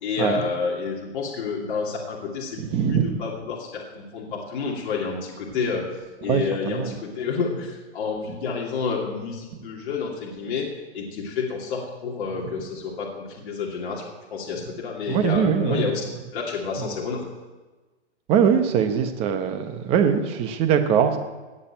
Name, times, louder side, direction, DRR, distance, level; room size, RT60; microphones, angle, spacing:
voice 1, 0.0-5.8 6.2-10.7 10.9-14.0 14.3-16.0 16.3-17.2, left 5 dB, 45° left, -2 dB, 2.9 m, -29 dB
voice 2, 2.6-3.2 6.3-6.9 15.1-15.9 16.8-16.9 18.3-21.2, right 7 dB, 15° right, 8 dB, 0.9 m, -22 dB
18.5 x 6.7 x 9.0 m, 1.2 s
hypercardioid pair, 160°, 35 cm